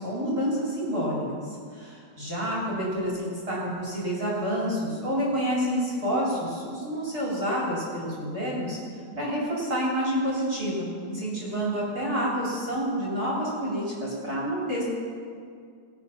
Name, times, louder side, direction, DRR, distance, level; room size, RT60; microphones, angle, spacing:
voice 1, 0.0-8.8 9.1-14.8, equal, 20° right, -6 dB, 3.1 m, -28 dB
20.0 x 8.4 x 5.8 m, 2.2 s
omnidirectional pair, 5.7 m